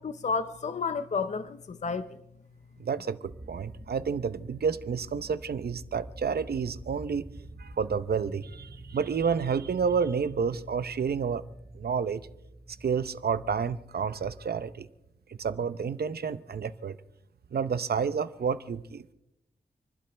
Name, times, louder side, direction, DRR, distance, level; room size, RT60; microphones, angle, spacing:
voice 1, 0.0-2.1, left 5 dB, 45° left, 0.6 m, -31 dB
voice 2, 2.8-7.3 7.6-11.4 11.7-12.2 12.8-14.9 15.3-17.0 17.5-19.0, right 6 dB, 70° right, 0.8 m, -30 dB
sound 1, 3.3-14.7, right 1 dB, 45° right, 4.9 m, -47 dB
30.0 x 12.0 x 3.4 m
wide cardioid pair, 115°, 17 cm